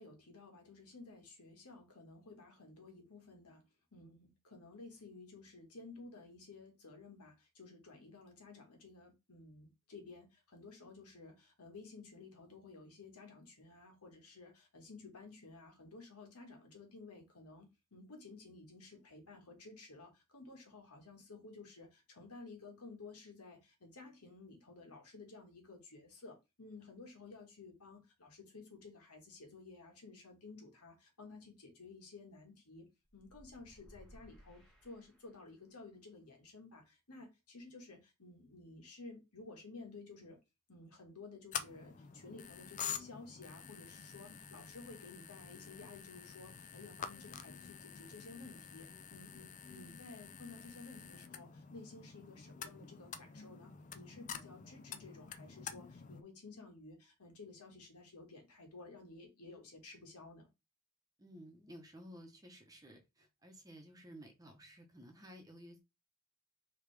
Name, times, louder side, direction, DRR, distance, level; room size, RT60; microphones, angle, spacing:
voice 1, 0.0-3.6 3.9-32.9 33.1-40.4 40.7-60.5, left 3 dB, 90° left, 1.7 m, -54 dB
sound 1, 33.0-35.7, equal, 5° left, 1.4 m, -61 dB
sound 2, 41.5-56.2, left 7 dB, 35° left, 0.4 m, -48 dB
voice 2, 61.2-65.8, equal, 15° right, 0.8 m, -54 dB
5.0 x 3.0 x 3.4 m
head